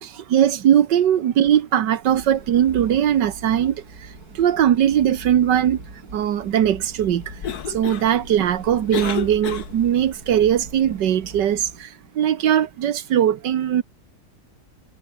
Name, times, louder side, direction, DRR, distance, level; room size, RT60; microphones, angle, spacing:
voice 1, 0.0-5.8 6.1-7.4 7.7-13.8, right 10 dB, 85° right, 1.7 m, -20 dB
sound 1, 2.0-11.8, right 2 dB, 60° right, 5.8 m, -41 dB
Cough, 7.2-10.1, left 8 dB, 65° left, 1.8 m, -32 dB
omnidirectional pair, 1.8 m